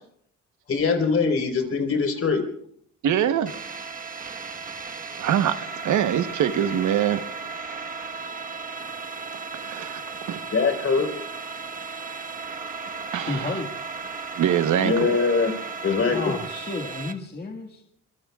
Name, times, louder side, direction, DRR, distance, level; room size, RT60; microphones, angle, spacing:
voice 1, 0.7-2.4 10.5-11.1 14.8-15.5 15.8-16.3, left 4 dB, 50° left, 4 dB, 4.2 m, -22 dB
voice 2, 3.0-3.5 5.2-5.6 5.8-7.2 9.5-10.0 10.3-10.4 13.1-13.5 14.4-15.2, right 10 dB, 75° right, 10 dB, 1.1 m, -23 dB
sound 1, 3.5-17.1, right 4 dB, 25° right, 1.3 m, -35 dB
voice 3, 13.3-13.7 16.1-17.8, left 3 dB, 30° left, 2 dB, 1.8 m, -32 dB
26.0 x 23.0 x 2.4 m, 0.65 s
cardioid pair, 90°, 30 cm